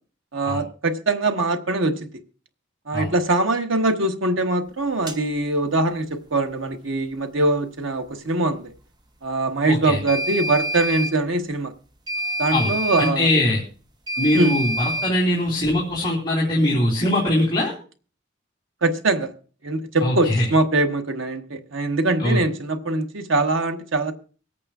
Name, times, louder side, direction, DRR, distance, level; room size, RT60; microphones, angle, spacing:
voice 1, 0.3-2.0 2.9-8.7 9.2-11.7 12.4-13.3 14.3-14.6 18.8-19.3 19.6-24.1, right 2 dB, 85° right, 1.1 m, -22 dB
sound 1, 5.1-5.2 10.1-11.2 12.1-13.2 14.1-15.2, equal, 20° right, 0.7 m, -27 dB
voice 2, 9.7-10.0 12.5-13.6 14.2-17.7 20.0-20.5 22.2-22.4, left 1 dB, 25° left, 3.0 m, -21 dB
24.5 x 8.5 x 2.4 m
head